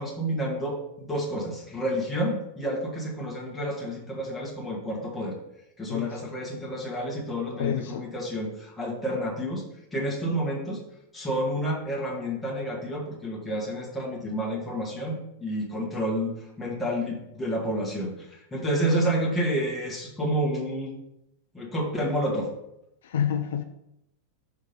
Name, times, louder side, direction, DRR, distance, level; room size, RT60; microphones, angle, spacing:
voice 1, 0.0-5.4 5.8-9.6 9.9-10.8 11.1-20.9 21.5-22.5, equal, 10° left, 1.5 m, -29 dB
voice 2, 5.9-6.3 7.4-8.1 23.0-23.6, left 9 dB, 60° left, 0.4 m, -29 dB
5.8 x 3.5 x 5.2 m
figure-of-eight pair, 90°, 0 cm